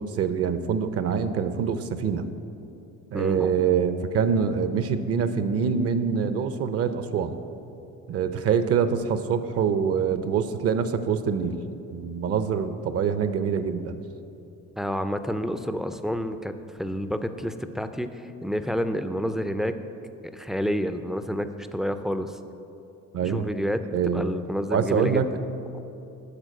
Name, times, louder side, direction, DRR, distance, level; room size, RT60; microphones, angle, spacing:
voice 1, 0.0-2.3 3.1-7.4 8.1-11.6 11.9-14.0 23.1-23.5 23.9-24.3 24.7-25.3, right 7 dB, 50° right, 11 dB, 0.6 m, -25 dB
voice 2, 3.1-3.5 14.8-16.5 16.8-19.7 20.3-22.4 23.2-25.3, equal, ahead, 9 dB, 0.3 m, -29 dB
11.5 x 4.5 x 7.6 m, 2.8 s
cardioid pair, 120°, 30 cm